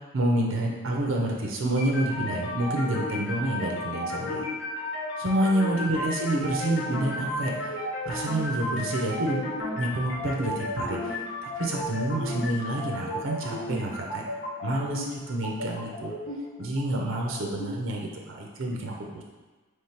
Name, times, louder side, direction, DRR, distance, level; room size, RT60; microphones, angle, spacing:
voice 1, 0.1-4.4 5.2-7.7 8.0-9.4 9.8-11.2 11.4-14.2 14.6-16.1 16.6-19.2, right 1 dB, 70° right, 0 dB, 0.7 m, -28 dB
sound 1, 1.8-17.8, left 1 dB, 55° left, 1.2 m, -33 dB
3.5 x 3.2 x 4.3 m, 1.3 s
head